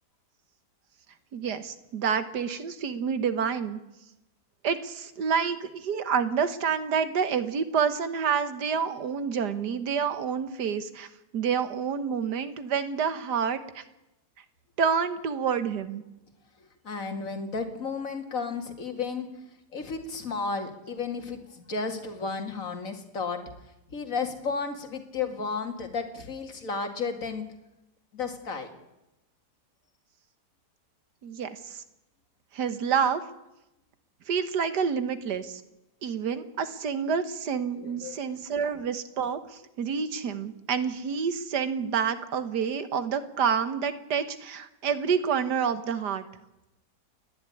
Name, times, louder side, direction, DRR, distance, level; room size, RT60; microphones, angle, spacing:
voice 1, 1.3-3.8 4.6-11.1 11.3-13.8 14.8-16.0 31.2-31.8 32.5-33.2 34.3-35.6 36.0-46.2, right 6 dB, 70° right, 11 dB, 1.8 m, -28 dB
voice 2, 16.8-19.3 19.7-23.4 23.9-27.5 28.1-28.7 37.8-38.4, left 4 dB, 50° left, 5 dB, 2.6 m, -33 dB
29.5 x 11.0 x 9.8 m, 0.95 s
omnidirectional pair, 1.8 m